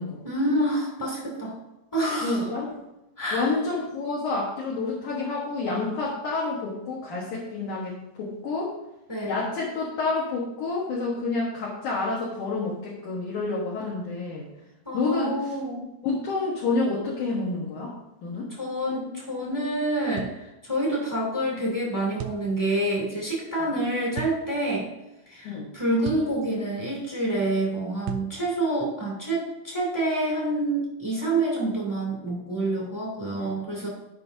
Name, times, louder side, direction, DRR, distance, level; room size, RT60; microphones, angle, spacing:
voice 1, 0.2-1.6 1.9-2.5 3.2-3.5 9.1-9.3 14.8-15.9 18.5-20.3 20.6-24.9 25.3-33.9, right 1 dB, 5° left, -3 dB, 1.5 m, -27 dB
voice 2, 2.2-2.8 3.3-8.7 9.2-14.5 14.9-15.3 16.0-17.9 18.2-18.5 25.4-25.7 33.3-33.6, left 3 dB, 60° left, -5 dB, 2.3 m, -29 dB
sound 1, 20.2-20.4 22.2-22.5 24.1-24.4 26.0-26.3 28.1-28.3, right 9 dB, 80° right, 2.3 m, -35 dB
14.0 x 5.6 x 2.7 m, 0.92 s
omnidirectional pair, 4.7 m